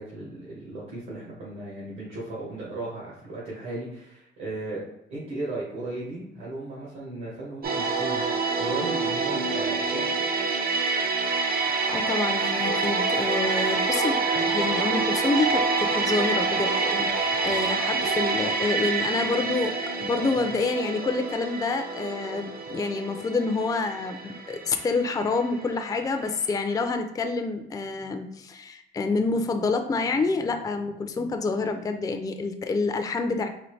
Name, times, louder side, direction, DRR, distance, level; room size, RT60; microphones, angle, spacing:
voice 1, 0.0-10.1, right 2 dB, 75° right, -7 dB, 1.5 m, -36 dB
sound 1, 7.6-26.5 26.7-26.9, right 4 dB, 50° right, 0.6 m, -27 dB
voice 2, 11.9-33.5, left 3 dB, 20° left, 6 dB, 0.4 m, -28 dB
4.0 x 2.5 x 3.2 m, 0.82 s
cardioid pair, 90°, 20 cm